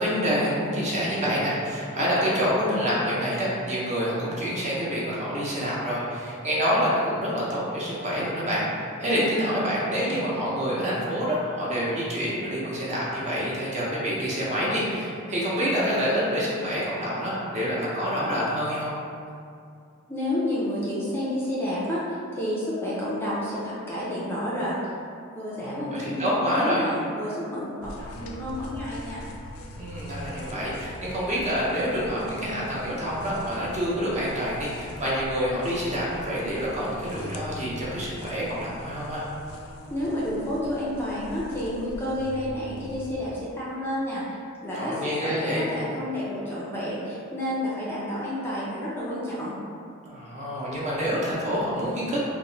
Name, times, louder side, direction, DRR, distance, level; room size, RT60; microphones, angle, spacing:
voice 1, 0.0-18.9 25.6-26.8 29.8-39.2 44.7-45.6 50.1-52.2, equal, 35° right, -7 dB, 0.7 m, -27 dB
voice 2, 20.1-24.7 25.3-29.2 39.9-49.6, left 1 dB, 10° left, -8 dB, 0.4 m, -30 dB
sound 1, 27.8-43.2, left 1 dB, 70° left, 0.3 m, -42 dB
2.9 x 2.1 x 3.8 m, 2.4 s
head